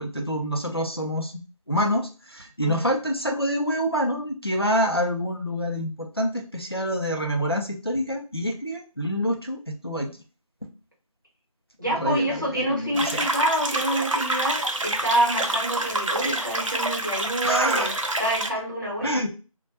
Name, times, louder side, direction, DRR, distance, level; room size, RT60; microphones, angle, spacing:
voice 1, 0.0-1.3 1.7-10.1 12.0-13.3 17.4-17.9 19.0-19.3, equal, 45° left, 1 dB, 0.4 m, -26 dB
voice 2, 2.6-3.0 11.8-17.9 18.2-19.2, right 1 dB, 35° right, -4 dB, 0.9 m, -27 dB
sound 1, 12.9-18.5, right 2 dB, 60° right, 0.5 m, -27 dB
2.1 x 2.1 x 2.7 m, 0.33 s
figure-of-eight pair, 180°, 18 cm